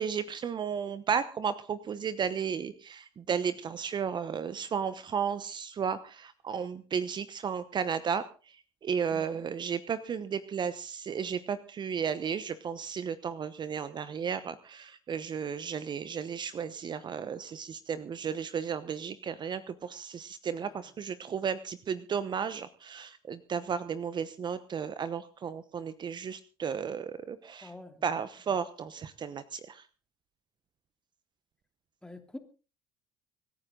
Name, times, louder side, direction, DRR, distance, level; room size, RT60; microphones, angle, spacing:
voice 1, 0.0-8.3 8.8-27.7 28.0-29.8, right 7 dB, 40° right, 1.0 m, -34 dB
voice 2, 9.1-9.4 20.6-20.9 27.6-28.1 32.0-32.4, left 2 dB, 5° left, 3.1 m, -47 dB
25.5 x 10.0 x 3.9 m
supercardioid pair, 75°, 11 cm